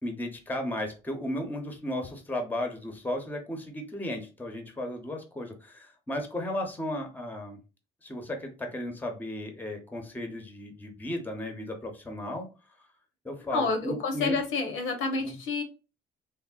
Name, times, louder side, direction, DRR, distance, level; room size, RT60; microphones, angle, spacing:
voice 1, 0.0-7.6 8.0-12.5 13.2-14.4 15.2-15.4, left 1 dB, 10° left, 4 dB, 0.7 m, -35 dB
voice 2, 13.5-15.6, left 4 dB, 85° left, 4 dB, 0.8 m, -29 dB
3.3 x 2.1 x 2.2 m, 0.32 s
cardioid pair, 90°, 20 cm